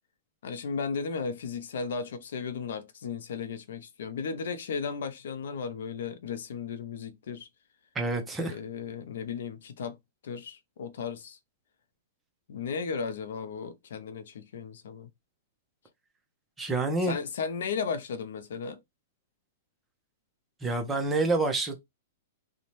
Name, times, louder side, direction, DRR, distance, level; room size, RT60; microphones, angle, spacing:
voice 1, 0.4-7.5 8.4-10.0 10.2-11.4 12.5-15.1 17.0-18.8, left 5 dB, 75° left, 0.5 m, -35 dB
voice 2, 7.9-8.6 16.6-17.2 20.6-21.8, right 2 dB, 10° right, 0.6 m, -27 dB
2.6 x 2.1 x 3.0 m
hypercardioid pair, 160°, 0 cm